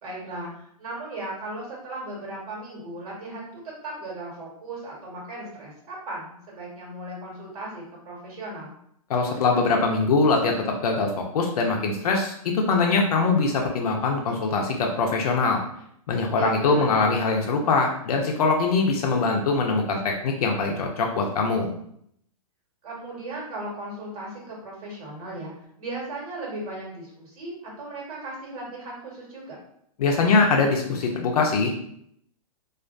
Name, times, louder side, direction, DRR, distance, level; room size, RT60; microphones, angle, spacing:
voice 1, 0.0-8.7 16.3-17.1 22.8-25.5 25.8-29.6, right 2 dB, 75° right, -4 dB, 1.3 m, -37 dB
voice 2, 9.1-15.6 16.1-21.7 30.0-31.7, left 4 dB, 80° left, 1 dB, 0.5 m, -22 dB
2.4 x 2.2 x 2.4 m, 0.70 s
hypercardioid pair, 140°, 19 cm